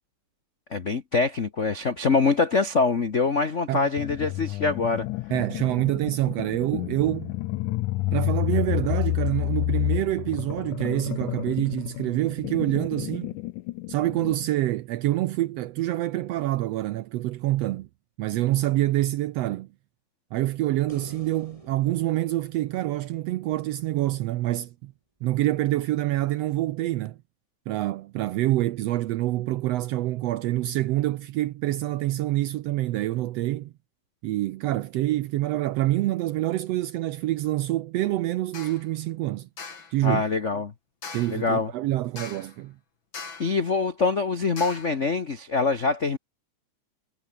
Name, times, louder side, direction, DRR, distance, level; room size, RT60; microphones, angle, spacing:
voice 1, 0.7-5.1 40.0-40.7 41.3-41.7 43.4-46.2, left 4 dB, 70° left, 0.7 m, -24 dB
sound 1, 4.0-14.4, left 19 dB, 85° left, 2.1 m, -30 dB
voice 2, 5.3-7.3 8.1-13.3 13.9-17.9 18.2-19.7 20.3-24.9 25.2-27.2 27.7-33.7 34.2-39.5 39.9-40.2 41.1-42.7, right 16 dB, 75° right, 1.5 m, -26 dB
sound 2, 20.9-24.2 27.0-27.1, right 1 dB, 10° right, 4.7 m, -50 dB
sound 3, 38.5-38.9 39.6-40.0 41.0-41.5 42.2-42.6 43.1-43.6 44.6-45.0, left 5 dB, 40° left, 3.8 m, -40 dB
omnidirectional pair, 3.5 m